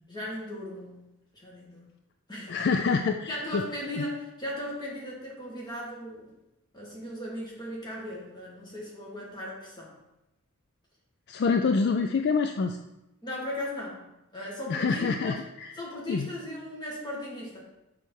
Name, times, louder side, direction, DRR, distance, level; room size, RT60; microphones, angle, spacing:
voice 1, 0.1-1.0 1.3-1.8 2.3-2.6 3.3-6.3 6.7-9.9 13.2-14.0 14.3-15.3 15.8-17.6, left 1 dB, 20° left, -4 dB, 1.9 m, -37 dB
voice 2, 2.5-3.6 4.0-4.1 11.3-12.8 14.7-15.8 16.1-16.3, left 4 dB, 50° left, 6 dB, 0.3 m, -26 dB
6.4 x 5.5 x 4.5 m, 0.93 s
head